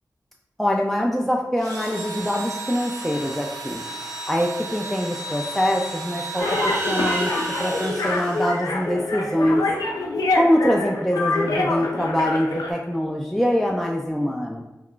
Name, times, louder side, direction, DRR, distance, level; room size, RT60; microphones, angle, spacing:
voice 1, 0.6-3.8 4.3-9.6 10.4-14.6, equal, 5° left, -1 dB, 0.3 m, -24 dB
Engine / Drill, 1.6-8.9, right 3 dB, 75° right, 0.7 m, -34 dB
sound 1, 6.2-9.2, right 1 dB, 30° right, 0.7 m, -33 dB
sound 2, 6.4-12.7, left 2 dB, 80° left, 0.4 m, -26 dB
2.3 x 2.2 x 3.7 m, 1.0 s
cardioid pair, 45°, 6 cm